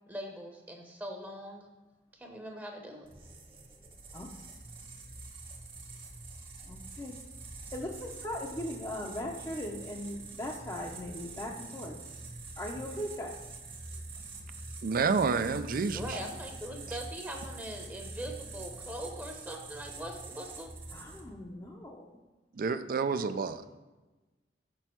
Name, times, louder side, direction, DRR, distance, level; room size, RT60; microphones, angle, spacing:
voice 1, 0.1-1.7 2.2-3.1 15.9-20.7, equal, 10° right, 1 dB, 0.8 m, -41 dB
sound 1, 3.1-21.4, right 3 dB, 30° right, 1.0 m, -45 dB
voice 2, 6.7-7.2 7.7-12.0 12.6-13.3 20.9-22.1, left 1 dB, 20° left, -2 dB, 0.6 m, -39 dB
voice 3, 14.8-16.2 16.9-17.0 22.5-23.8, right 5 dB, 50° right, 11 dB, 0.4 m, -29 dB
6.1 x 5.5 x 4.4 m, 1.2 s
head